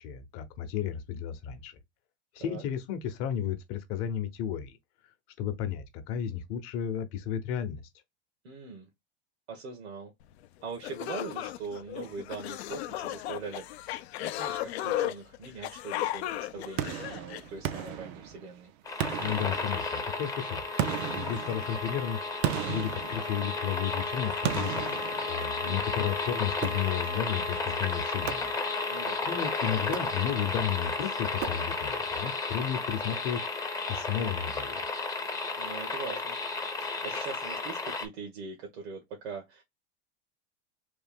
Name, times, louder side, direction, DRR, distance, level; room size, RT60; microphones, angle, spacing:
voice 1, 0.0-1.8 2.3-4.8 5.4-7.8 19.2-24.9 25.3-28.5 28.9-29.0 29.3-33.5 33.9-34.8, left 9 dB, 45° left, 0.8 m, -33 dB
voice 2, 8.4-8.9 9.5-10.1 10.6-18.7 25.6-26.1 28.9-29.2 35.6-36.4 36.7-39.6, right 5 dB, 80° right, 1.2 m, -42 dB
sound 1, 10.4-10.5 10.8-17.9, left 14 dB, 80° left, 0.5 m, -35 dB
sound 2, 16.8-18.6 19.0-20.2 20.8-23.8 24.4-25.9 26.6-27.3 28.3-29.0 29.8-30.6 31.4-32.1, right 11 dB, 45° right, 0.5 m, -36 dB
sound 3, 18.9-38.1, left 3 dB, 10° left, 0.6 m, -33 dB
3.3 x 2.4 x 3.5 m
supercardioid pair, 130°, 32 cm